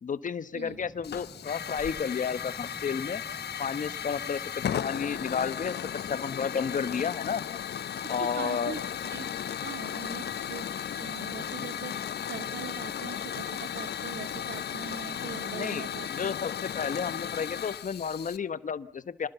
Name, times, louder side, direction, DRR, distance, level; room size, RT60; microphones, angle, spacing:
voice 1, 0.0-3.2 3.6-4.4 4.8-7.5 8.1-8.8 15.5-19.3, left 6 dB, 40° left, 13 dB, 1.3 m, -32 dB
sound 1, 0.6-6.5, equal, 10° right, 3.8 m, -50 dB
Hiss / Fire, 1.0-18.4, left 9 dB, 55° left, 1.0 m, -35 dB
voice 2, 8.0-16.3, right 7 dB, 60° right, 9 dB, 2.6 m, -42 dB
27.5 x 20.5 x 7.1 m, 0.63 s
cardioid pair, 90°, 20 cm